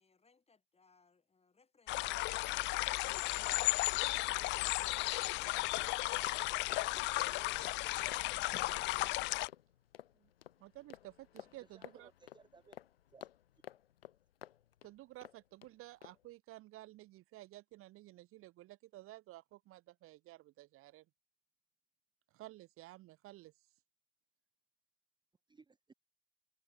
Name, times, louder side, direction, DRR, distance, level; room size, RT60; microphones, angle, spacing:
voice 1, 0.0-3.0, left 4 dB, 20° left, 7.1 m, -68 dB
sound 1, 1.9-9.5, left 21 dB, 40° left, 0.4 m, -34 dB
sound 2, 5.4-15.7 16.0-16.2, left 11 dB, 75° left, 1.2 m, -55 dB
voice 2, 10.6-12.1 14.8-21.0 22.3-23.5, right 17 dB, 45° right, 1.5 m, -53 dB
voice 3, 11.6-12.8 13.1-13.3 25.5-25.9, right 4 dB, 15° right, 1.3 m, -62 dB
figure-of-eight pair, 65°, 30 cm